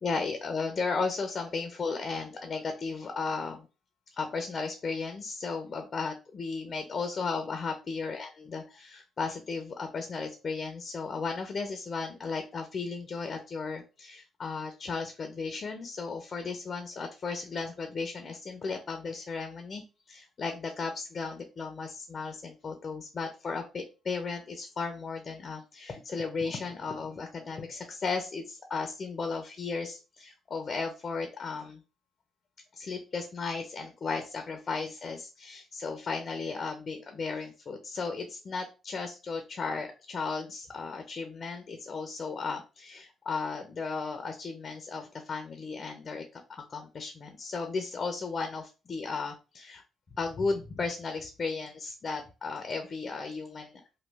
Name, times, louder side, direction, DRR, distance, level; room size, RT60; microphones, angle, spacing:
voice 1, 0.0-3.7 4.2-31.8 32.7-49.8 50.2-53.8, left 4 dB, 45° left, 6 dB, 0.6 m, -35 dB
3.0 x 2.2 x 3.4 m, 0.31 s
cardioid pair, 90°, 0 cm